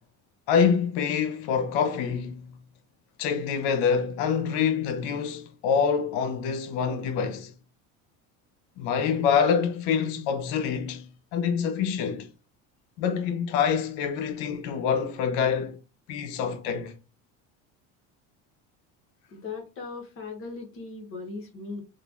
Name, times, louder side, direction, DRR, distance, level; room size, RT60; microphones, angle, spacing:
voice 1, 0.5-2.5 3.2-7.5 8.8-12.3 13.0-15.8 16.1-17.0, left 7 dB, 85° left, 0.6 m, -26 dB
voice 2, 19.3-21.8, left 4 dB, 40° left, 1.2 m, -38 dB
3.2 x 2.3 x 2.4 m
supercardioid pair, 105°, 34 cm